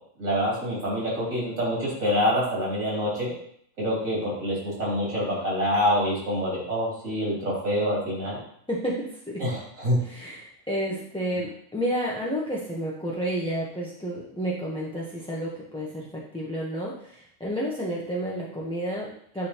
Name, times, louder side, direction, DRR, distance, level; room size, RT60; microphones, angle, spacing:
voice 1, 0.2-3.3 3.8-8.4 9.4-10.0, equal, 90° right, -6 dB, 3.5 m, -26 dB
voice 2, 8.7-9.4 10.0-19.5, equal, 5° left, -6 dB, 0.8 m, -31 dB
10.5 x 3.7 x 2.9 m, 0.65 s
omnidirectional pair, 1.4 m